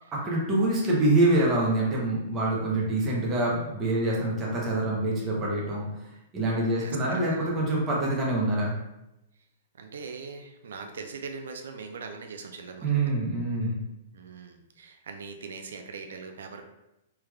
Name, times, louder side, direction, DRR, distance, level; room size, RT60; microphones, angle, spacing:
voice 1, 0.1-5.9 6.3-8.7 12.8-13.8, right 2 dB, 15° right, -5 dB, 0.7 m, -25 dB
voice 2, 6.8-7.5 9.8-13.0 14.1-16.6, right 5 dB, 85° right, 5 dB, 0.4 m, -41 dB
3.3 x 2.3 x 3.2 m, 0.91 s
hypercardioid pair, 180°, 0 cm